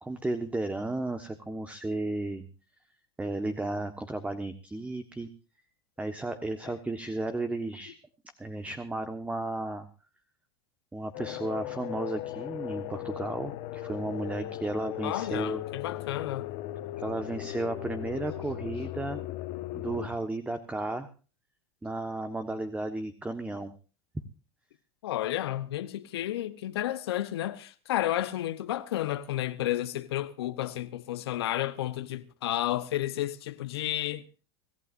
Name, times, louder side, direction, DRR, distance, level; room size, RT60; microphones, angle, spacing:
voice 1, 0.0-2.5 3.2-5.3 6.0-7.9 8.4-9.9 10.9-15.6 17.0-19.2 19.7-21.1 21.8-23.7, right 2 dB, 10° right, 1.5 m, -34 dB
sound 1, 11.1-20.1, left 14 dB, 60° left, 1.4 m, -37 dB
voice 2, 15.0-16.6 25.0-34.2, left 13 dB, 80° left, 1.1 m, -32 dB
25.5 x 15.0 x 2.6 m
hypercardioid pair, 90°, 13 cm